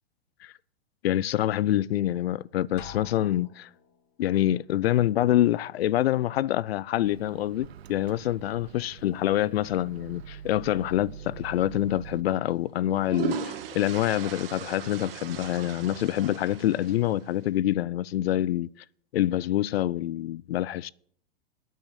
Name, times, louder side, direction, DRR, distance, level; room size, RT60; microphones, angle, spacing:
voice 1, 1.0-3.7 4.2-18.7 19.1-20.9, left 13 dB, 75° left, 0.5 m, -26 dB
Drum, 2.8-4.0, left 8 dB, 50° left, 1.8 m, -45 dB
Microwave oven, 7.0-12.2, right 9 dB, 85° right, 0.6 m, -44 dB
sound 1, 11.4-11.6 12.7-17.3, right 8 dB, 65° right, 1.4 m, -37 dB
9.2 x 8.0 x 8.9 m
hypercardioid pair, 130°, 31 cm